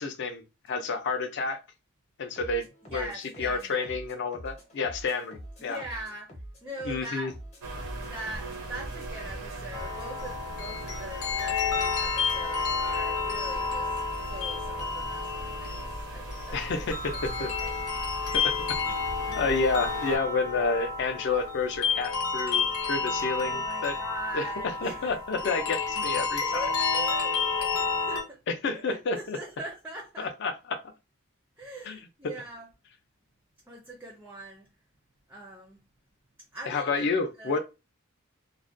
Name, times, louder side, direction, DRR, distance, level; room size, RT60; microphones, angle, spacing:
voice 1, 0.0-1.6 2.2-3.1 3.4-5.8 6.9-7.3 16.5-17.5 18.3-18.5 18.9-19.0 19.4-24.0 24.3-26.7 28.5-29.4 30.2-30.8 31.9-32.0 36.7-37.6, left 4 dB, 55° left, 0.4 m, -30 dB
sound 1, 2.4-10.1, equal, 30° left, 0.8 m, -46 dB
voice 2, 2.9-3.9 5.6-6.3 6.6-7.4 8.0-16.6 17.1-17.7 19.2-19.5 23.2-25.2 25.4-28.4 28.7-30.3 31.6-32.7 33.7-34.7 35.3-35.8 36.5-37.1 37.4-37.6, right 1 dB, 10° right, 0.4 m, -42 dB
sound 2, 7.6-20.2, right 1 dB, 90° right, 0.6 m, -39 dB
sound 3, 9.7-28.2, left 5 dB, 85° left, 0.8 m, -30 dB
2.4 x 2.1 x 2.5 m
head